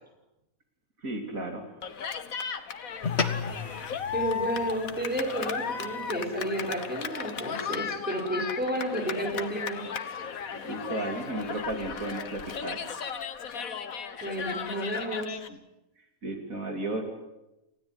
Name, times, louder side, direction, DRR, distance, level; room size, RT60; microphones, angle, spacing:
voice 1, 1.0-1.6 10.6-12.8 16.2-17.0, right 2 dB, 70° right, 4 dB, 3.4 m, -33 dB
Cheering, 1.8-15.5, left 6 dB, 75° left, 1.7 m, -35 dB
sound 1, 3.0-7.7, left 5 dB, 50° left, 2.0 m, -36 dB
voice 2, 4.1-9.8 14.2-15.4, right 1 dB, 5° right, 0 dB, 5.7 m, -31 dB
29.0 x 16.5 x 9.7 m, 0.94 s
omnidirectional pair, 1.5 m